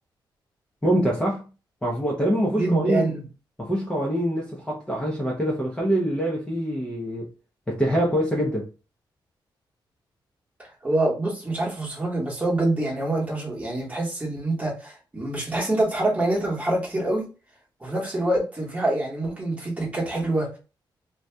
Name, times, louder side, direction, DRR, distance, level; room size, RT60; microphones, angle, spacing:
voice 1, 0.8-1.4 1.8-3.1 3.6-7.3 7.7-8.7, equal, 10° left, 0.7 m, -24 dB
voice 2, 2.5-3.2 10.8-17.3 17.8-20.6, right 2 dB, 15° right, 1.2 m, -25 dB
2.7 x 2.4 x 3.3 m
wide cardioid pair, 130°, 8 cm